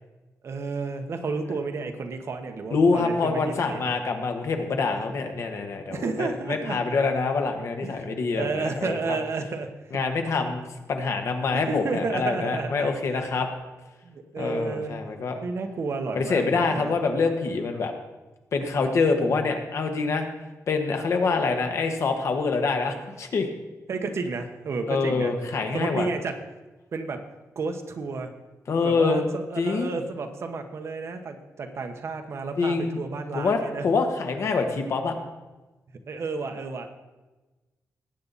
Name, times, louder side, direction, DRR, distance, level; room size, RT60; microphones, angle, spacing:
voice 1, 0.4-3.9 5.9-6.8 7.8-8.1 8.3-9.7 11.5-12.9 14.0-15.0 15.4-16.9 23.9-25.3 25.7-26.4 26.9-27.2 27.5-28.3 28.8-33.9 36.1-36.9, right 4 dB, 50° right, 6 dB, 1.2 m, -31 dB
voice 2, 2.7-9.2 9.9-13.5 14.4-15.3 16.1-17.9 18.5-20.2 20.7-23.5 24.9-26.1 28.7-29.3 29.6-30.0 32.6-33.0 33.3-35.2, left 4 dB, 55° left, 5 dB, 1.6 m, -25 dB
19.0 x 8.6 x 4.2 m, 1.2 s
wide cardioid pair, 165°, 6 cm